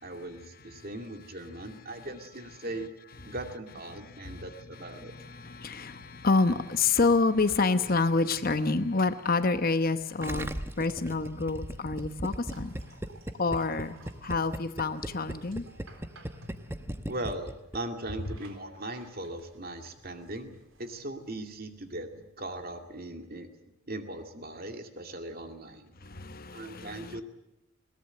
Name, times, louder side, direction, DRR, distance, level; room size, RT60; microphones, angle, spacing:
voice 1, 0.0-2.9 3.2-5.1 17.1-23.5 23.9-25.9 26.5-27.2, right 1 dB, 45° right, 6 dB, 2.3 m, -39 dB
voice 2, 4.1-4.4 4.7-10.5 10.8-12.7 13.4-15.6 26.0-27.2, left 3 dB, 45° left, 11 dB, 1.0 m, -28 dB
sound 1, 7.4-23.1, right 1 dB, 70° right, 3.6 m, -58 dB
Gurgling, 10.2-17.8 18.0-18.1, right 1 dB, 10° right, 0.9 m, -37 dB
21.0 x 18.0 x 7.8 m, 0.96 s
head